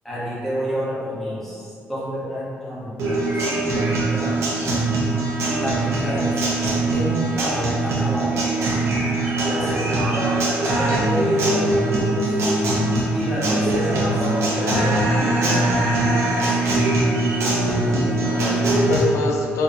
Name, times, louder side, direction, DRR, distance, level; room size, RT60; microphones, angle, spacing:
voice 1, 0.0-3.5 4.0-4.5 5.6-6.4 6.9-8.5 9.4-10.2 10.8-12.3 13.1-14.2 14.5-16.6, equal, 5° left, -9 dB, 0.8 m, -29 dB
sound 1, 3.0-17.4, right 1 dB, 45° right, 0.5 m, -36 dB
Guitar, 3.0-19.0, right 2 dB, 70° right, 0.8 m, -22 dB
voice 2, 17.9-19.6, left 3 dB, 80° left, -1 dB, 0.4 m, -27 dB
4.2 x 2.7 x 2.5 m, 2.4 s
cardioid pair, 180°, 5 cm